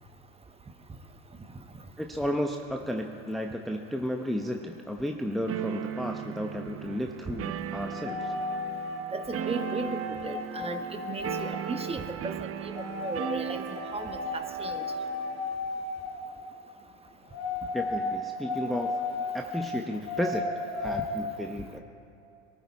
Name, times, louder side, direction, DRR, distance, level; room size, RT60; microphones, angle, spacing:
voice 1, 2.0-8.3 17.7-18.9 19.3-20.5 20.8-21.8, equal, ahead, 2 dB, 0.9 m, -33 dB
sound 1, 5.5-15.6, right 9 dB, 40° right, 1.0 m, -37 dB
sound 2, 7.9-9.0 9.5-11.6 12.7-13.3 13.7-16.2 17.3-19.6 20.0-21.0, left 3 dB, 55° left, 3.5 m, -34 dB
voice 2, 9.1-14.8, right 3 dB, 15° right, 7 dB, 1.4 m, -36 dB
23.0 x 14.0 x 4.2 m, 2.8 s
hypercardioid pair, 85°, 37 cm